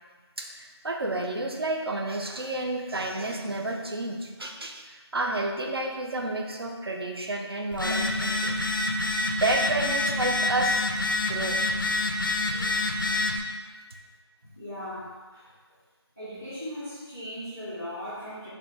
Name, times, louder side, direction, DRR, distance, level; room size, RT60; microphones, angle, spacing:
voice 1, 0.4-8.6 9.3-10.9 11.2-11.6 12.5-12.7, right 2 dB, 60° right, 1 dB, 0.7 m, -30 dB
Telephone, 7.7-13.4, left 2 dB, 50° left, 0.5 m, -27 dB
voice 2, 14.5-15.5 16.2-18.5, equal, 5° right, -16 dB, 0.6 m, -38 dB
5.0 x 2.3 x 4.4 m, 1.4 s
figure-of-eight pair, 170°, 14 cm